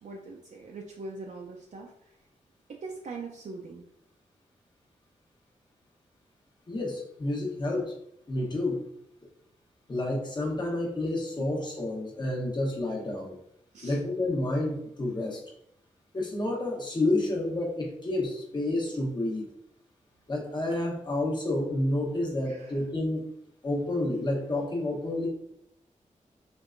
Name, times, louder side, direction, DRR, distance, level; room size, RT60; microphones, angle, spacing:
voice 1, 0.0-1.9 2.7-3.8 13.7-14.0 22.5-22.8, right 3 dB, 65° right, -1 dB, 0.5 m, -41 dB
voice 2, 6.7-7.9 8.3-8.8 9.9-13.3 13.8-15.4 16.1-19.4 20.3-23.2 23.6-25.3, left 1 dB, 35° left, -2 dB, 1.0 m, -29 dB
4.4 x 3.3 x 2.5 m, 0.76 s
wide cardioid pair, 135°, 14 cm